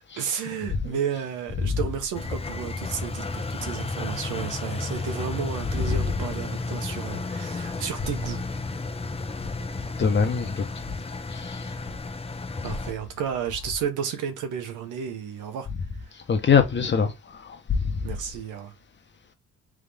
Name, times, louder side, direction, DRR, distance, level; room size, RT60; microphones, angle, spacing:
voice 1, 0.2-8.4 12.6-15.7 18.0-18.7, right 8 dB, 85° right, 1.1 m, -32 dB
Engine, 2.1-12.9, left 3 dB, 20° left, 0.7 m, -33 dB
voice 2, 10.0-10.6 11.3-11.7 12.6-12.7 16.3-17.1 17.4-17.8, left 6 dB, 35° left, 1.1 m, -23 dB
3.7 x 3.5 x 3.5 m
cardioid pair, 90°, 30 cm